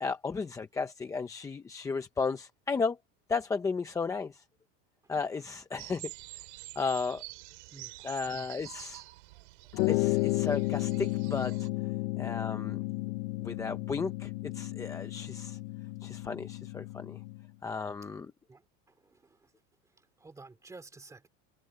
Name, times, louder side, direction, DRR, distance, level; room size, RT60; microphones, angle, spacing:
voice 1, 0.0-3.0 3.3-4.4 5.1-6.1 6.8-7.2 8.0-9.0 9.9-11.7 12.2-12.8 13.4-15.6 16.0-17.2 17.6-18.3, left 4 dB, 10° left, 0.6 m, -34 dB
sound 1, 5.8-11.7, right 23 dB, 75° right, 5.3 m, -47 dB
voice 2, 7.7-8.1 18.5-19.5 20.0-21.3, right 3 dB, 10° right, 2.7 m, -52 dB
sound 2, 9.7-17.5, left 22 dB, 65° left, 0.8 m, -33 dB
cardioid pair, 170°, 35 cm